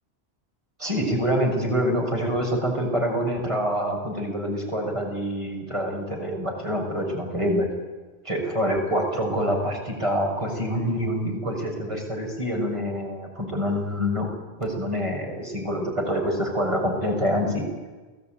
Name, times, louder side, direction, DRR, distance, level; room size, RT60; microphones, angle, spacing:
voice 1, 0.8-7.7 8.2-14.3 14.6-17.7, equal, 25° right, 1 dB, 6.7 m, -26 dB
29.0 x 19.5 x 9.3 m, 1.3 s
omnidirectional pair, 1.1 m